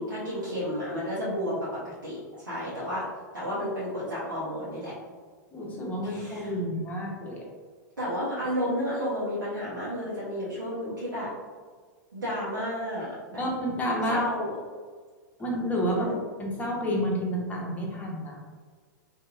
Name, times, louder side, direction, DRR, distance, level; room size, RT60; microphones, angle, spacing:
voice 1, 0.0-3.0 3.3-4.9 6.0-6.5 8.0-11.3 12.1-13.4 14.1-14.5 15.9-16.2, equal, 90° right, -10 dB, 0.9 m, -32 dB
voice 2, 5.5-7.4 13.4-14.2 15.4-16.1 16.4-18.4, equal, 15° left, -2 dB, 0.8 m, -30 dB
2.8 x 2.6 x 2.4 m, 1.5 s
hypercardioid pair, 100°, 10 cm